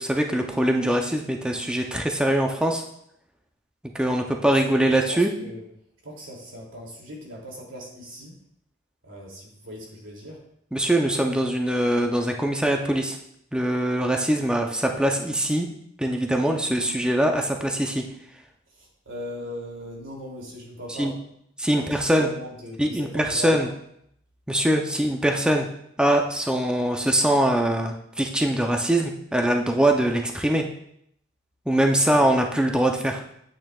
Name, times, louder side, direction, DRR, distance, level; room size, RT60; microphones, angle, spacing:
voice 1, 0.0-2.8 3.9-5.3 10.7-13.2 13.5-15.7 16.0-18.1 20.9-21.1 21.6-22.3 22.8-23.7 24.5-25.7 26.0-30.7 31.7-33.2, right 1 dB, 5° right, 3 dB, 0.6 m, -22 dB
voice 2, 4.4-5.6 6.0-8.4 9.0-10.4 18.7-21.1 21.7-23.7 32.2-32.3, equal, 90° right, -2 dB, 2.8 m, -39 dB
8.9 x 8.8 x 2.4 m, 0.72 s
head